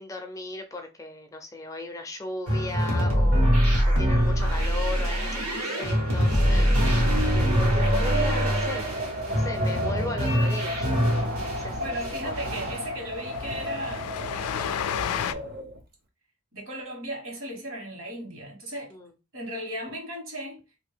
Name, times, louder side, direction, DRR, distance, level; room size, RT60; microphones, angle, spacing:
voice 1, 0.0-6.7 7.3-8.9 9.2-12.0 12.2-12.3 18.9-19.1, left 2 dB, 15° left, 0.4 m, -37 dB
sound 1, 2.5-11.6 11.9-12.8, equal, 85° right, 1.5 m, -23 dB
Wind, 7.4-15.8, equal, 40° right, 0.6 m, -33 dB
Train, 10.8-10.9 11.1-11.3 11.5-11.6 12.0-15.3, left 9 dB, 90° left, 0.3 m, -33 dB
voice 2, 11.8-15.4 16.5-18.9 19.3-20.6, right 1 dB, 65° right, 1.5 m, -37 dB
2.8 x 2.7 x 3.3 m
head